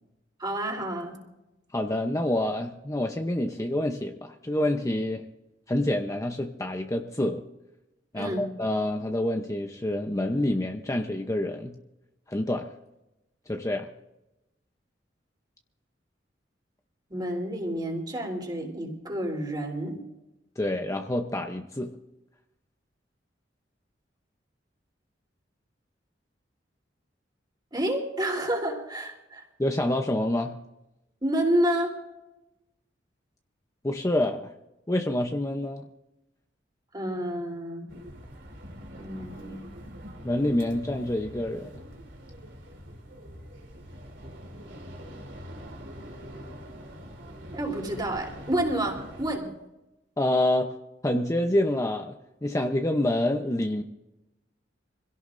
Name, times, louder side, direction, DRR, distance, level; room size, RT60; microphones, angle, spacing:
voice 1, 0.4-1.2 8.1-8.4 17.1-20.0 27.7-29.4 31.2-32.0 36.9-37.9 38.9-39.7 47.5-49.5, right 1 dB, 25° right, 1 dB, 3.4 m, -29 dB
voice 2, 1.7-5.2 5.7-7.4 8.1-11.8 12.3-12.7 13.5-13.9 20.6-21.9 29.6-30.6 33.8-34.5 34.9-35.9 40.2-41.7 50.2-50.7 51.0-52.1 52.4-53.8, left 1 dB, 15° left, 4 dB, 0.7 m, -27 dB
sound 1, 37.9-49.4, equal, 85° right, 3.1 m, -44 dB
25.5 x 17.0 x 2.6 m, 0.94 s
head